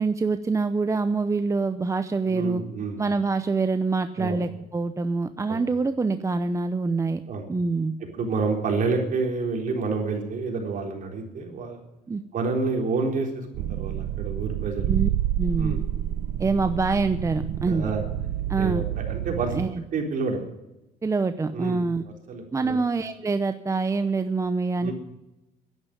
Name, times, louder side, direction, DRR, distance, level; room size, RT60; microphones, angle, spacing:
voice 1, 0.0-2.6 3.0-7.2 7.5-8.0 12.1-12.2 14.9-15.1 15.4-15.9 16.4-17.9 18.5-18.9 19.5-19.8 21.0-22.0 22.5-24.9, right 4 dB, 20° right, 10 dB, 0.7 m, -25 dB
voice 2, 2.3-3.0 4.2-4.4 5.5-5.6 7.3-7.4 8.1-11.8 12.3-14.9 15.5-15.8 17.7-18.0 18.6-20.4 21.5-21.9 22.3-22.8 24.8-24.9, right 4 dB, 50° right, 2 dB, 3.9 m, -29 dB
sound 1, 13.5-19.7, right 12 dB, 80° right, 0.7 m, -29 dB
11.0 x 11.0 x 9.9 m, 0.96 s
cardioid pair, 110°, 17 cm